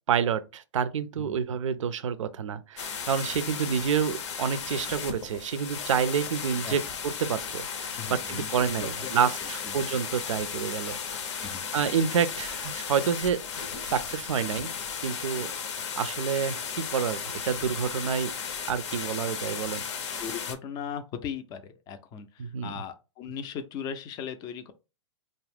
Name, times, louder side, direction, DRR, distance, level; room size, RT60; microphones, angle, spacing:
voice 1, 0.1-11.5 11.7-14.7 15.0-18.3 18.7-19.8 22.4-22.7, right 7 dB, 75° right, 0.4 m, -29 dB
sound 1, 2.8-20.6, left 6 dB, 65° left, 0.6 m, -35 dB
voice 2, 8.0-9.1 9.6-9.8 11.4-11.6 20.2-24.7, left 7 dB, 25° left, 0.4 m, -38 dB
2.4 x 2.1 x 3.4 m
hypercardioid pair, 115°, 16 cm